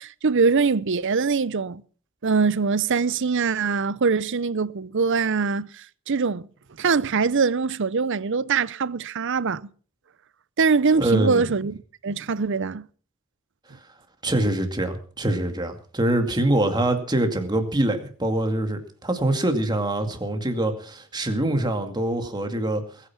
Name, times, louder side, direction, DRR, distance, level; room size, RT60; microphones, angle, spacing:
voice 1, 0.0-1.8 2.2-5.7 6.1-6.5 6.8-9.6 10.6-11.7 12.0-12.8, right 5 dB, 55° right, 0.6 m, -22 dB
voice 2, 11.0-11.4 14.2-22.8, right 1 dB, 20° right, 2.3 m, -24 dB
21.0 x 9.2 x 6.0 m
head